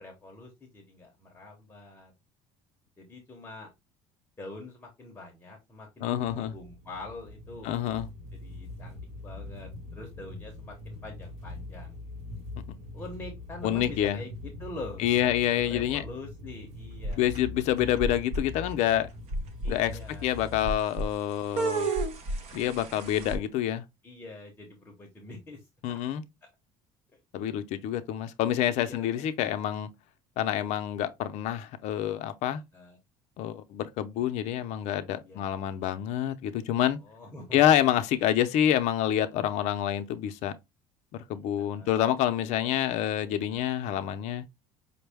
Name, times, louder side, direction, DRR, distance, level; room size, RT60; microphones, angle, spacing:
voice 1, 0.0-2.1 3.0-3.7 4.4-7.7 8.3-12.0 12.9-17.3 19.6-20.3 24.0-26.0 26.4-26.5 27.1-27.2 28.6-29.3 32.7-33.0 35.2-35.6 37.0-37.6 41.6-42.0 43.2-43.5, left 2 dB, 15° left, 0.8 m, -45 dB
voice 2, 6.0-6.5 7.6-8.1 13.6-14.2 15.0-16.0 17.2-19.1 19.7-21.9 22.5-23.8 25.8-26.2 27.3-29.9 30.4-32.6 33.4-37.0 37.5-40.5 41.3-44.5, left 11 dB, 55° left, 0.5 m, -27 dB
sound 1, 6.6-20.7, left 2 dB, 65° right, 1.5 m, -43 dB
sound 2, 17.0-17.6 18.0-18.4 18.9-19.0 19.3-19.7 20.7-21.1 21.6-23.4, right 2 dB, 50° right, 0.8 m, -31 dB
5.3 x 2.2 x 3.3 m
cardioid pair, 170°, 14 cm